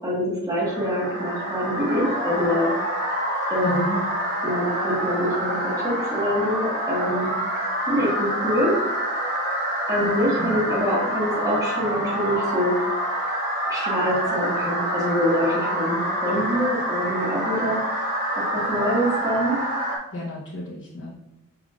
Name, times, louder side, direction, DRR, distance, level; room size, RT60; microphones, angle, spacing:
voice 1, 0.0-2.7 3.5-4.0 4.4-7.3 7.9-8.7 9.9-12.8 13.7-17.8 18.4-19.6, equal, 15° right, -5 dB, 1.4 m, -25 dB
sound 1, 0.6-20.0, right 1 dB, 40° right, 1.1 m, -27 dB
voice 2, 3.6-4.0 10.0-10.6 20.1-21.1, equal, 60° left, -7 dB, 0.9 m, -32 dB
5.7 x 3.6 x 2.4 m, 0.87 s
head